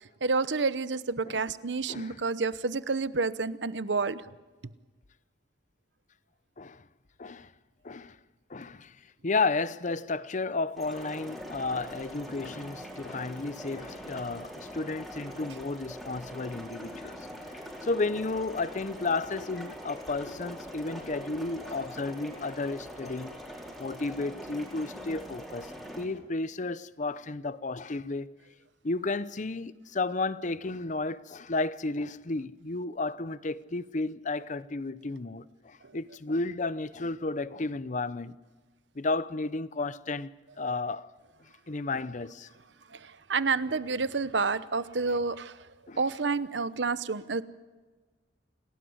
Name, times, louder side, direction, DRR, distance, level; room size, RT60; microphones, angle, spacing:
voice 1, 0.0-4.2 42.9-45.6 46.0-47.4, right 4 dB, 80° right, 0.9 m, -29 dB
voice 2, 1.9-2.2 6.6-6.8 7.2-7.5 7.8-8.2 8.5-9.0 9.2-17.2 17.8-23.3 23.8-25.7 26.0-28.3 28.8-38.4 39.0-40.3 40.6-41.1 41.7-42.5 45.9-46.0, left 3 dB, 45° left, 0.8 m, -32 dB
sound 1, 10.8-26.0, equal, ahead, 4.9 m, -43 dB
28.5 x 18.0 x 8.0 m
head